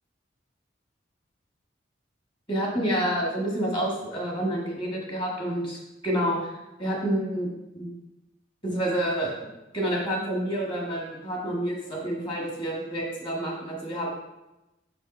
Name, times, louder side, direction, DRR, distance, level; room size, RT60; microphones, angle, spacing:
voice 1, 2.5-7.5 7.7-7.9 8.6-9.3 9.7-14.1, right 1 dB, 25° left, -1 dB, 1.6 m, -28 dB
6.1 x 5.4 x 4.3 m, 0.98 s
head